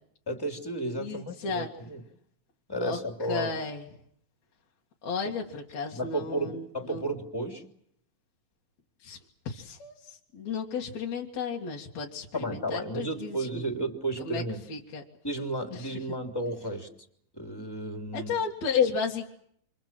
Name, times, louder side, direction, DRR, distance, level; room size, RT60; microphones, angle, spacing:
voice 1, 0.3-2.0 2.7-3.5 5.9-7.6 12.3-14.6 15.2-16.9 17.3-18.3, right 1 dB, 5° left, 5 dB, 2.8 m, -33 dB
voice 2, 1.0-1.7 2.8-3.0 3.3-3.9 5.0-7.0 9.0-9.2 9.5-13.6 14.2-14.4 14.7-15.0 15.7-15.9 18.1-19.3, left 5 dB, 55° left, -1 dB, 3.0 m, -33 dB
29.5 x 24.0 x 7.6 m, 0.69 s
omnidirectional pair, 4.1 m